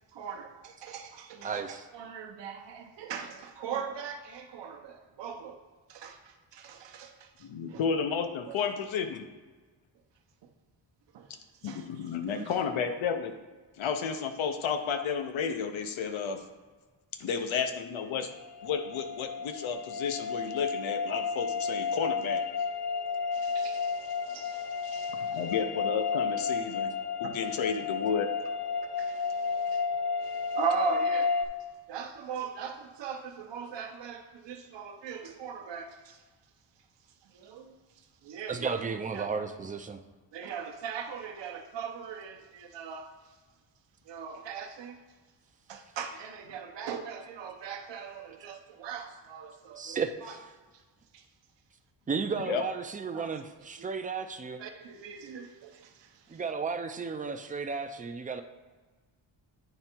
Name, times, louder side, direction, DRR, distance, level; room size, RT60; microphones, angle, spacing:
voice 1, 0.1-5.6 5.9-7.3 7.7-7.8 8.5-8.6 11.1-11.3 11.6-11.9 12.3-12.5 23.3-25.4 29.0-29.8 30.2-31.3 31.9-36.2 37.3-37.7 38.2-38.7 39.1-39.3 40.3-43.1 44.1-45.0 45.7-50.3 51.1-51.2 53.1-53.3 53.8-53.9 54.6-56.4, right 7 dB, 65° right, 4 dB, 0.8 m, -40 dB
voice 2, 1.4-1.9 38.5-40.0 49.8-50.5 52.1-54.6 56.3-58.4, right 5 dB, 20° right, 7 dB, 0.4 m, -34 dB
voice 3, 7.4-9.3 11.6-13.3 13.8-16.4 17.2-18.3 18.6-22.4 25.3-26.9 27.2-28.3 52.4-52.6, left 6 dB, 90° left, 7 dB, 0.8 m, -32 dB
sound 1, 18.3-31.5, left 5 dB, 55° left, 0.7 m, -32 dB
9.0 x 3.4 x 4.4 m, 1.4 s
wide cardioid pair, 125°, 46 cm